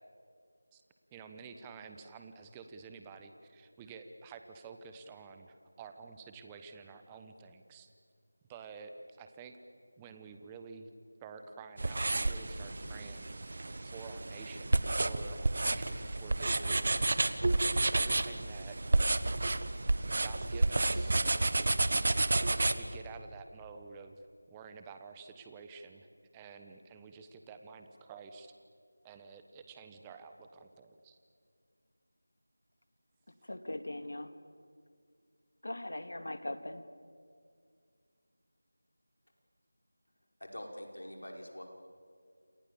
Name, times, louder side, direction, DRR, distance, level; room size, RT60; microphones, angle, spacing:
voice 1, 1.1-7.9 8.5-9.6 10.0-10.9 11.2-13.3 13.8-17.1 17.7-18.8 20.2-21.2 22.6-24.2 24.5-28.5 29.0-31.2, right 5 dB, 10° right, 7 dB, 1.1 m, -50 dB
sound 1, 11.8-22.7, right 2 dB, 45° right, 1.3 m, -30 dB
voice 2, 33.4-34.3 35.6-36.9, left 1 dB, 70° left, 9 dB, 2.3 m, -40 dB
voice 3, 40.4-41.6, equal, 85° left, 2 dB, 5.7 m, -45 dB
28.5 x 27.0 x 7.2 m, 2.2 s
figure-of-eight pair, 170°, 0 cm